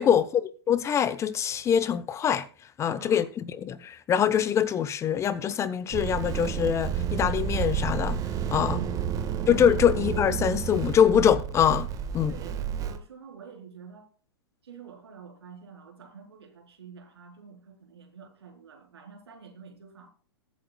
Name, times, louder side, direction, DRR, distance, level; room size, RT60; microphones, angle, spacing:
voice 1, 0.0-2.5 2.8-8.2 8.5-8.8 9.5-12.4, left 9 dB, 20° left, 0.8 m, -24 dB
voice 2, 2.8-3.3 8.6-9.2 9.6-9.8 12.3-14.1 14.6-20.1, right 6 dB, 75° right, 4.1 m, -47 dB
sound 1, 5.9-13.0, right 8 dB, 25° right, 1.5 m, -30 dB
21.0 x 8.8 x 2.3 m
hypercardioid pair, 115°, 14 cm